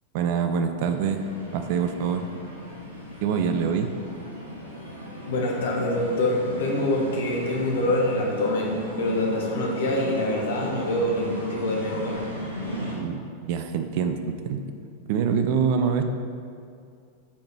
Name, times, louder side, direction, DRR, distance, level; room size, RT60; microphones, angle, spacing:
voice 1, 0.1-1.2 1.5-2.3 3.2-3.9 12.9-13.2 13.4-14.2 14.4-14.6 15.1-16.0, right 6 dB, 50° right, 7 dB, 0.5 m, -25 dB
sound 1, 0.8-12.9, equal, 80° right, 1.6 m, -36 dB
voice 2, 5.2-8.7 9.0-12.2, left 1 dB, 55° left, -1 dB, 1.3 m, -25 dB
7.1 x 4.8 x 4.7 m, 2.3 s
figure-of-eight pair, 90°, 0 cm